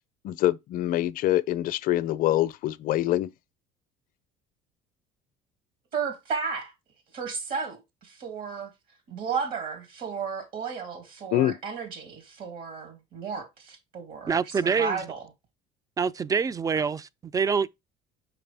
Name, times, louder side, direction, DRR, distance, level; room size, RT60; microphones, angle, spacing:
voice 1, 0.2-3.3 11.3-11.6, left 14 dB, 60° left, 0.5 m, -25 dB
voice 2, 5.9-6.7 7.1-8.7 9.1-15.3, right 5 dB, 60° right, 2.4 m, -34 dB
voice 3, 14.3-15.0 16.0-17.7, right 5 dB, 20° right, 0.4 m, -26 dB
5.9 x 4.7 x 3.4 m
supercardioid pair, 105°, 17 cm